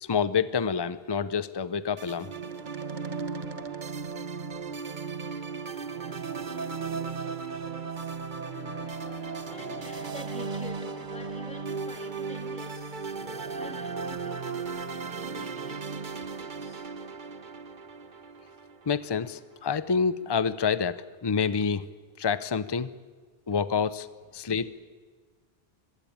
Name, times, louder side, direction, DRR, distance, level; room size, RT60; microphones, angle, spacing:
voice 1, 0.0-2.3 18.9-21.8 22.2-22.9 23.5-24.1 24.3-24.7, left 6 dB, 30° left, 14 dB, 0.7 m, -27 dB
sound 1, 2.0-19.3, right 5 dB, 50° right, 1.2 m, -36 dB
voice 2, 6.6-7.2 7.5-8.6 9.5-16.9 24.4-24.5, left 2 dB, 5° left, 3 dB, 2.3 m, -48 dB
sound 2, 8.4-14.3, left 6 dB, 90° left, 1.5 m, -49 dB
25.5 x 21.0 x 8.7 m, 1.5 s
omnidirectional pair, 1.0 m